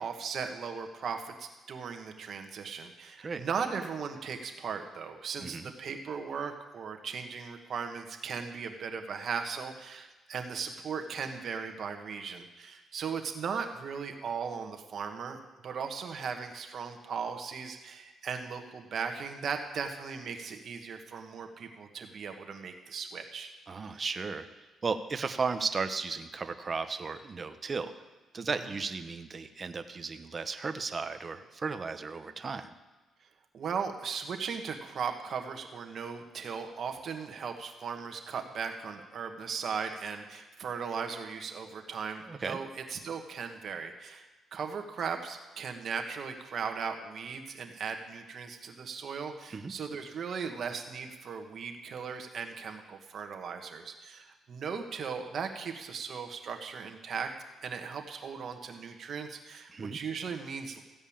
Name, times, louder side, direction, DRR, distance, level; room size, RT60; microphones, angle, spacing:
voice 1, 0.0-23.5 28.6-28.7 33.5-44.2 44.5-57.3 57.6-60.8, right 6 dB, 55° right, 5 dB, 1.5 m, -37 dB
voice 2, 5.4-5.7 23.7-24.5 24.8-27.9 28.3-32.7 42.2-42.6 49.5-49.7 59.7-60.0, right 4 dB, 35° right, 9 dB, 0.9 m, -35 dB
15.0 x 5.3 x 8.8 m, 1.2 s
cardioid pair, 90°, 0 cm